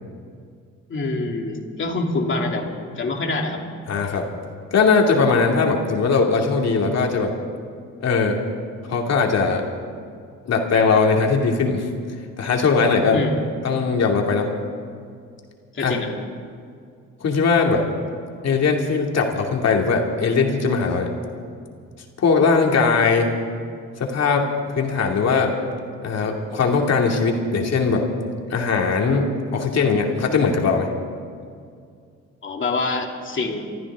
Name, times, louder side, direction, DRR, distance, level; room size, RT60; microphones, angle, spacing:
voice 1, 0.9-3.6 13.1-13.4 15.7-16.1 32.4-33.6, left 2 dB, 40° left, 1 dB, 2.7 m, -25 dB
voice 2, 3.9-4.3 4.7-7.3 8.0-8.4 8.9-9.6 10.5-11.9 12.4-13.2 13.6-14.5 15.8-16.0 17.2-17.8 18.4-21.1 22.2-23.3 24.0-25.5 26.0-28.1 28.5-30.9, left 4 dB, 60° left, 1 dB, 2.5 m, -20 dB
28.5 x 14.0 x 3.7 m, 2.2 s
cardioid pair, 90°, 30 cm